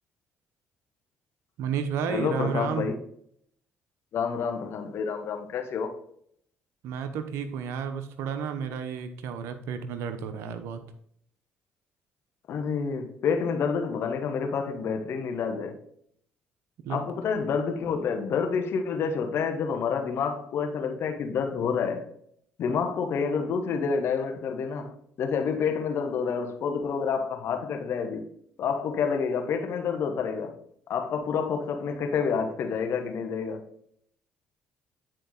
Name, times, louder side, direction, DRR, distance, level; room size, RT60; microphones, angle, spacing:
voice 1, 1.6-2.9 6.8-10.8 16.8-17.0, right 7 dB, 75° right, 0.8 m, -32 dB
voice 2, 2.1-3.0 4.1-6.0 12.5-15.8 16.9-22.1 22.6-28.3 28.6-30.6 30.9-33.6, left 6 dB, 65° left, 1.3 m, -28 dB
9.1 x 4.5 x 4.0 m
hypercardioid pair, 55°, 5 cm